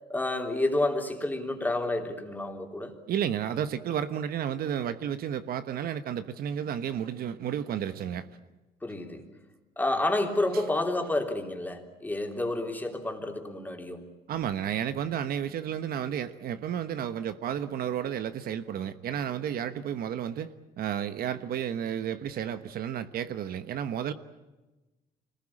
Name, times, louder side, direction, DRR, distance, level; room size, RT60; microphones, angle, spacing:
voice 1, 0.1-2.9 8.8-9.3 9.8-14.1, left 2 dB, 10° left, 3 dB, 3.5 m, -29 dB
voice 2, 3.1-8.3 14.3-24.1, right 9 dB, 60° right, 11 dB, 1.1 m, -32 dB
25.5 x 20.0 x 8.8 m, 1.1 s
cardioid pair, 110°, 17 cm